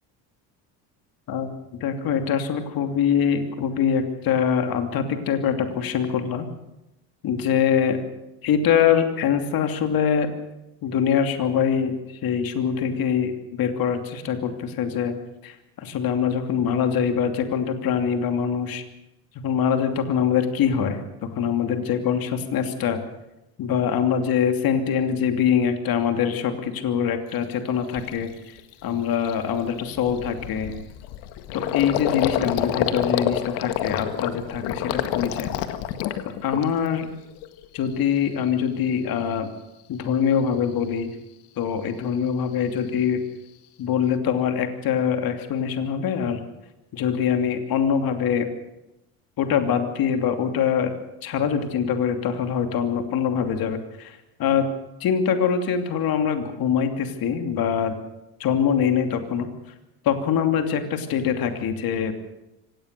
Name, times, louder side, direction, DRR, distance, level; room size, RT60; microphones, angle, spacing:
voice 1, 1.3-6.5 7.2-8.0 8.4-10.3 10.8-11.9 12.2-15.1 15.4-18.8 19.4-23.0 23.6-28.3 28.8-30.7 31.5-35.5 36.4-37.1 37.7-39.5 39.9-41.1 41.6-43.2 43.8-46.4 46.9-48.5 49.4-50.9 51.2-54.7 55.0-58.0 58.4-59.5 60.0-62.1, left 7 dB, 55° left, 6 dB, 2.9 m, -23 dB
Gurgling, 27.4-27.5 27.9-28.2 28.6-28.7 29.0-37.0 37.4-38.0, left 11 dB, 85° left, 1.9 m, -28 dB
24.5 x 18.5 x 6.8 m, 0.95 s
cardioid pair, 115°, 41 cm